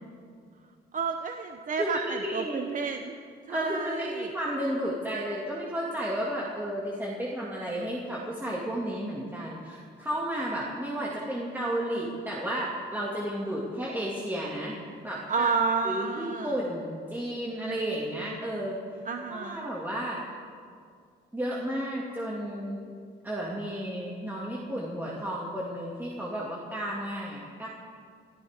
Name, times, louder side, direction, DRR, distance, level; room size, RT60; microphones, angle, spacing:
voice 1, 0.9-3.1 3.5-4.3 15.3-16.6 19.1-19.7, right 5 dB, 40° right, 6 dB, 0.8 m, -30 dB
voice 2, 1.8-2.7 3.5-14.8 15.0-15.5 15.8-18.8 19.3-20.2 21.3-22.8 23.2-27.7, equal, 10° right, -5 dB, 2.2 m, -32 dB
24.0 x 14.0 x 3.6 m, 2.2 s
cardioid pair, 90°, 20 cm